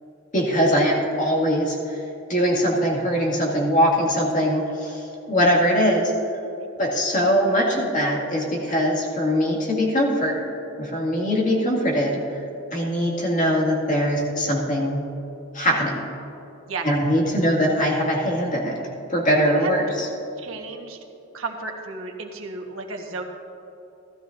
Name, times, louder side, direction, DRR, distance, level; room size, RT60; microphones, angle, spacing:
voice 1, 0.3-2.0 2.3-5.0 5.3-6.1 6.8-10.4 10.8-12.4 12.7-15.0 15.5-16.0 16.8-18.7 19.1-20.1, equal, 35° left, -3 dB, 2.1 m, -21 dB
voice 2, 19.5-20.0 20.4-21.0 21.3-23.2, right 3 dB, 80° right, 2 dB, 1.3 m, -33 dB
16.5 x 12.5 x 2.6 m, 2.9 s
head